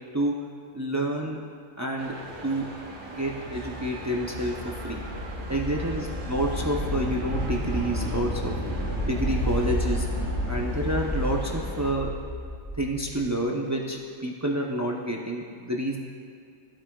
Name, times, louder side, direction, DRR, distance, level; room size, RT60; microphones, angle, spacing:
voice 1, 0.7-1.4 1.8-2.1 2.4-2.7 3.0-5.0 5.5-8.5 9.0-10.1 10.5-12.1 12.8-16.0, right 1 dB, 25° right, -1 dB, 0.4 m, -29 dB
sound 1, 2.0-11.9, right 2 dB, 40° right, 1.0 m, -41 dB
sound 2, 3.1-13.3, equal, 60° left, 2.2 m, -31 dB
14.5 x 8.6 x 2.3 m, 2.3 s
omnidirectional pair, 1.4 m